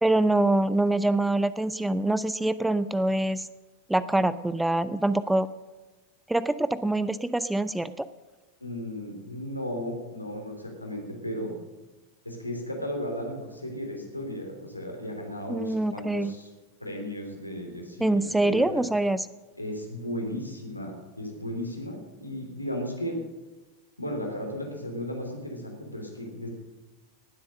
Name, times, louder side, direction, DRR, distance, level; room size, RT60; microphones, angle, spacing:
voice 1, 0.0-3.5 3.9-5.5 6.3-8.1 15.5-16.3 18.0-19.3, right 2 dB, 5° right, 16 dB, 0.5 m, -25 dB
voice 2, 8.6-11.5 12.2-16.5 16.8-18.9 19.6-23.2 24.0-26.5, equal, 85° left, 1 dB, 3.3 m, -35 dB
18.5 x 8.1 x 6.5 m, 1.2 s
figure-of-eight pair, 90°, 0 cm